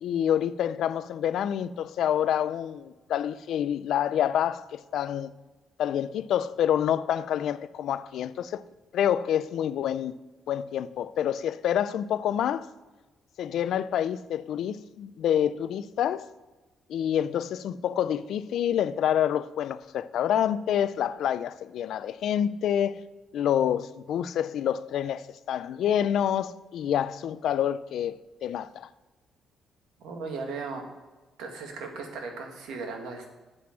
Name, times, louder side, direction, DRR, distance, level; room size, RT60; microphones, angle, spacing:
voice 1, 0.0-5.3 5.8-8.6 8.9-10.1 10.5-12.7 13.4-16.3 16.9-23.0 23.3-28.1 28.4-28.9, left 10 dB, 75° left, 0.4 m, -27 dB
voice 2, 30.0-30.8 31.4-33.3, right 4 dB, 85° right, 1.7 m, -37 dB
7.8 x 5.9 x 7.5 m
cardioid pair, 90°, 0 cm